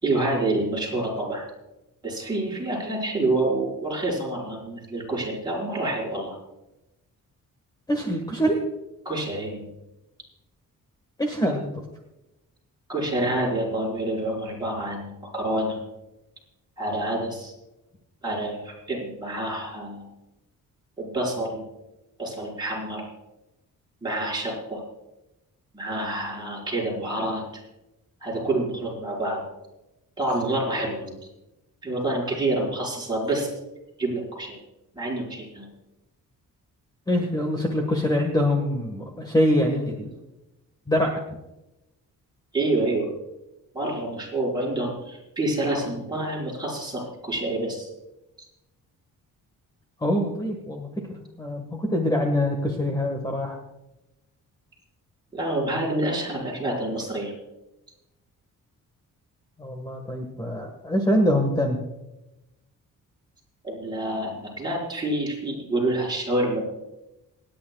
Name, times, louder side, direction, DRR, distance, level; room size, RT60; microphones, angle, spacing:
voice 1, 0.0-1.5 2.0-6.3 9.0-9.7 12.9-15.8 16.8-17.5 18.2-20.1 21.0-21.6 22.2-23.0 24.0-24.8 25.7-27.4 28.2-29.4 30.2-31.2 31.8-33.5 34.0-34.6 34.9-35.7 42.5-43.1 43.7-47.9 55.3-57.3 63.6-66.6, right 2 dB, 15° right, -5 dB, 5.1 m, -27 dB
voice 2, 7.9-8.6 11.2-11.8 37.1-40.1 40.9-41.2 50.0-53.6 59.6-61.8, equal, 10° left, 2 dB, 1.5 m, -24 dB
27.5 x 10.5 x 2.3 m, 0.95 s
wide cardioid pair, 165°, 33 cm